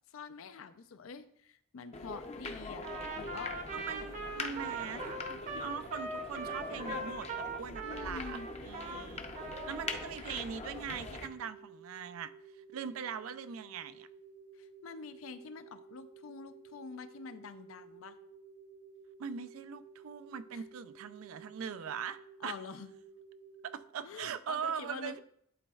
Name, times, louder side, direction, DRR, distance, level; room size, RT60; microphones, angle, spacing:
voice 1, 0.1-3.9 7.8-8.5 14.5-18.2 20.5-20.6 22.4-22.9 24.0-25.2, left 5 dB, 80° left, 0.5 m, -46 dB
sound 1, 1.9-11.3, left 3 dB, 30° left, 0.5 m, -43 dB
Trumpet, 2.8-9.0 9.3-10.1, right 3 dB, 35° right, 0.7 m, -41 dB
voice 2, 3.7-5.0 5.5-9.2 9.6-12.3 12.7-14.1 19.2-22.6 23.6-25.2, right 7 dB, 90° right, 0.4 m, -41 dB
sound 2, 4.7-23.8, right 5 dB, 70° right, 1.3 m, -54 dB
11.0 x 4.1 x 2.3 m
head